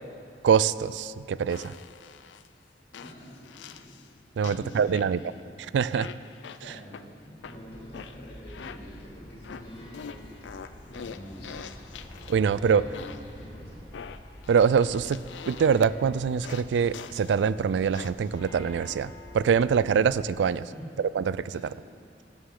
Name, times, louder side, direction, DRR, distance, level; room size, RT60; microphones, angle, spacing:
voice 1, 0.4-1.7 4.4-5.2 5.7-6.1 12.3-12.8 14.5-15.2 15.5-20.7 21.0-21.6, right 6 dB, 75° right, 17 dB, 0.3 m, -24 dB
sound 1, 1.5-2.5 2.9-4.1 4.4-5.4 5.9-7.0 7.4-9.1 9.4-12.5 12.9-13.4 13.9-15.9 16.4-17.4 17.9-18.4, left 7 dB, 85° left, 0.4 m, -44 dB
voice 2, 2.9-4.0 4.4-5.3 6.6-11.7 12.6-13.1 13.3-13.8 20.7-20.9 21.5-21.7 22.0-22.1, equal, 60° left, -6 dB, 2.9 m, -46 dB
sound 2, 7.4-20.2, left 1 dB, 25° left, 1.5 m, -47 dB
12.5 x 9.8 x 3.8 m, 2.5 s
head